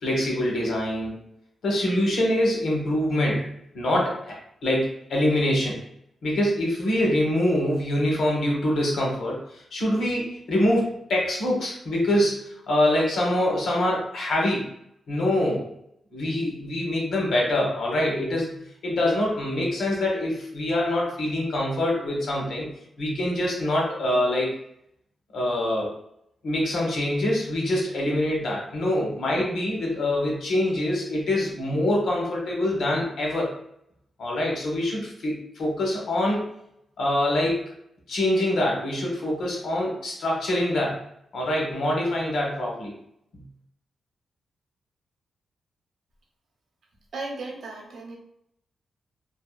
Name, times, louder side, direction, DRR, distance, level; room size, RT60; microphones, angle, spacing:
voice 1, 0.0-1.1 1.6-3.4 3.7-4.3 4.6-5.8 6.2-14.6 15.1-15.7 16.1-18.5 18.8-22.7 23.0-24.5 25.3-26.0 26.4-33.5 34.2-36.5 37.0-37.6 38.1-41.0 41.3-42.9, left 1 dB, 70° left, -2 dB, 0.9 m, -25 dB
voice 2, 47.1-48.1, right 3 dB, 65° right, -1 dB, 0.6 m, -35 dB
2.7 x 2.3 x 2.2 m, 0.75 s
wide cardioid pair, 150°, 0 cm